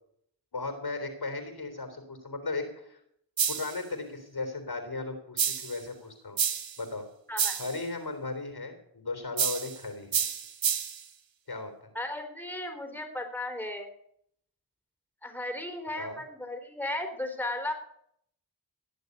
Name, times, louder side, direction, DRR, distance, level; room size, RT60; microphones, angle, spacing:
voice 1, 0.5-3.0 3.5-6.4 6.8-7.1 7.6-10.2 11.5-11.7 16.0-16.2, left 3 dB, 55° left, 7 dB, 3.7 m, -36 dB
sound 1, 3.4-3.8 5.4-5.8 6.4-6.8 7.4-7.8 9.4-9.8 10.1-11.0, right 7 dB, 80° right, 1.2 m, -29 dB
voice 2, 7.3-7.6 11.9-13.9 15.2-17.7, left 1 dB, 5° left, 5 dB, 3.8 m, -35 dB
18.0 x 6.5 x 9.7 m, 0.71 s
cardioid pair, 45°, 45 cm